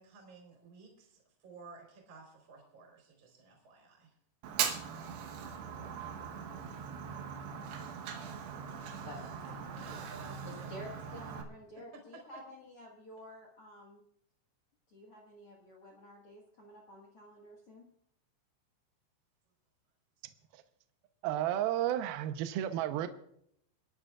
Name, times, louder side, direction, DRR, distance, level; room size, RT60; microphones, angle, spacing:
voice 1, 0.0-4.1 9.2-11.1 11.9-12.2, right 3 dB, 35° right, 0 dB, 4.4 m, -54 dB
Fire, 4.4-11.4, right 7 dB, 70° right, 2.9 m, -40 dB
voice 2, 9.0-10.0 10.5-14.0 14.9-17.9, left 1 dB, 75° left, -1 dB, 1.3 m, -51 dB
voice 3, 21.2-23.1, right 12 dB, 90° right, 9 dB, 2.1 m, -32 dB
29.5 x 11.5 x 2.4 m, 0.71 s
omnidirectional pair, 5.5 m